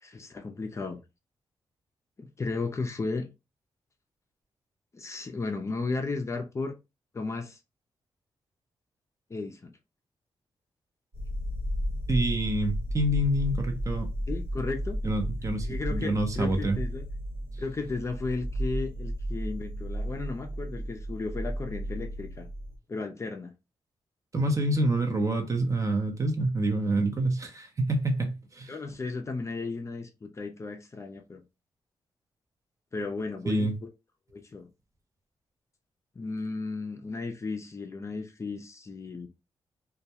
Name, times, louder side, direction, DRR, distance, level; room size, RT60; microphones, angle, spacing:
voice 1, 0.0-1.0 2.2-3.3 4.9-6.7 7.1-7.6 9.3-9.7 14.3-15.0 15.6-17.0 17.6-22.5 22.9-23.5 28.7-31.4 32.9-33.7 34.3-34.7 36.2-39.3, left 3 dB, 30° left, 0.4 m, -34 dB
sound 1, 11.1-22.8, equal, 75° right, 1.1 m, -33 dB
voice 2, 12.1-14.1 15.0-16.8 24.3-28.7 33.5-33.7, right 1 dB, 35° right, 0.6 m, -27 dB
2.2 x 2.1 x 2.7 m
cardioid pair, 95°, 9 cm